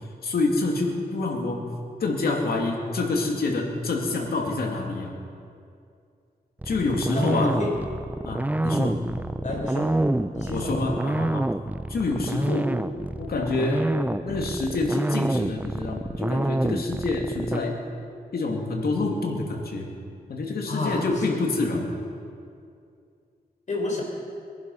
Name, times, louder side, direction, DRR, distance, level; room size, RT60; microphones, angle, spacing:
voice 1, 0.2-1.7 2.0-5.1 6.6-7.6 8.2-9.0 10.5-11.4 11.9-12.7 13.2-13.9 14.2-17.8 18.3-19.9 20.3-21.9, left 3 dB, 75° left, 1 dB, 2.6 m, -27 dB
sound 1, 6.6-17.6, right 1 dB, 10° right, 0.5 m, -27 dB
voice 2, 7.1-7.7 8.7-8.9 9.4-9.9 10.3-10.8 20.7-21.4 23.7-24.0, left 2 dB, 50° left, -1 dB, 4.6 m, -30 dB
23.0 x 11.0 x 5.6 m, 2.4 s
cardioid pair, 80°, 16 cm